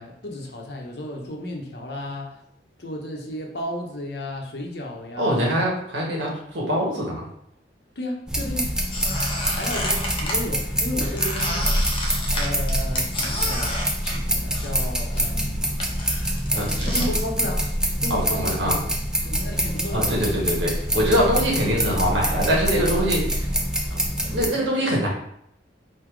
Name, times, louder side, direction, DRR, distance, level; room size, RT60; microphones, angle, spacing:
voice 1, 0.0-2.4 2.8-5.7 8.0-8.7 9.2-11.8 12.3-15.8 16.8-17.7 18.0-18.8 19.2-20.2 24.4-24.5, left 1 dB, 65° left, 0 dB, 0.8 m, -33 dB
voice 2, 5.2-7.2 16.5-17.1 18.1-18.8 19.9-23.5 23.9-24.0 24.3-25.1, equal, 85° right, -3 dB, 1.4 m, -23 dB
sound 1, 8.3-24.5, equal, 5° right, 0.4 m, -25 dB
Squeak, 8.9-10.4 11.2-14.9 15.1-17.1, left 1 dB, 30° left, 0.7 m, -31 dB
3.7 x 2.8 x 4.5 m, 0.73 s
head